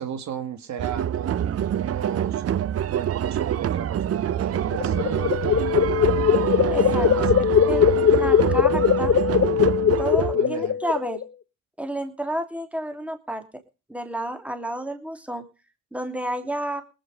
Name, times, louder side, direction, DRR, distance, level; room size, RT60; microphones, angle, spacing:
voice 1, 0.0-2.4 2.9-5.4 7.0-8.6 10.3-10.8, right 9 dB, 65° right, 8 dB, 2.1 m, -34 dB
sound 1, 0.8-10.4, right 10 dB, 50° right, 0.7 m, -26 dB
sound 2, 4.5-11.2, left 8 dB, 45° left, 0.9 m, -20 dB
voice 2, 6.7-7.1 7.7-7.9 8.2-9.2 10.0-11.2 11.8-13.6 13.9-15.4 15.9-16.8, right 1 dB, 5° right, 6 dB, 2.8 m, -30 dB
19.5 x 9.1 x 5.2 m, 0.33 s
cardioid pair, 90°, 30 cm